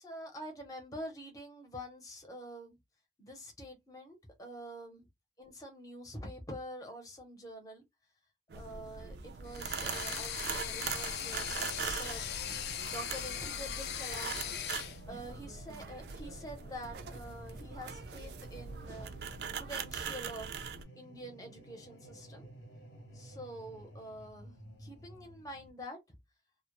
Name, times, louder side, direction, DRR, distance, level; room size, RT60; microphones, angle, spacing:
voice 1, 0.0-2.8 3.2-5.1 5.4-7.8 8.5-11.5 11.8-12.3 12.9-14.4 15.1-19.1 19.6-20.7 21.0-22.5 23.1-26.0, equal, 20° left, 0.7 m, -46 dB
sound 1, 8.5-20.8, right 6 dB, 65° right, 0.4 m, -41 dB
sound 2, 9.5-15.0, left 10 dB, 60° left, 0.3 m, -39 dB
sound 3, 10.7-25.7, right 1 dB, 85° left, 0.9 m, -53 dB
2.1 x 2.0 x 2.9 m
head